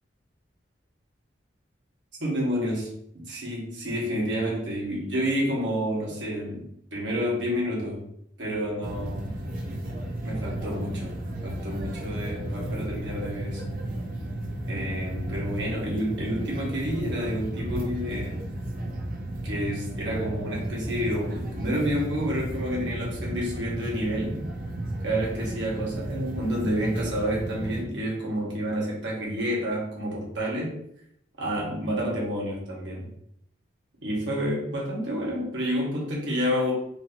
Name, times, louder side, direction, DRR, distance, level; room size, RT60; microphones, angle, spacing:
voice 1, 2.2-8.1 8.4-9.4 10.2-13.6 14.6-18.4 19.4-24.4 25.0-30.8 31.4-33.1 34.0-36.7, equal, 75° right, -4 dB, 1.4 m, -29 dB
sound 1, 8.8-27.8, right 1 dB, 50° right, 0.7 m, -33 dB
3.0 x 2.7 x 4.3 m, 0.72 s
head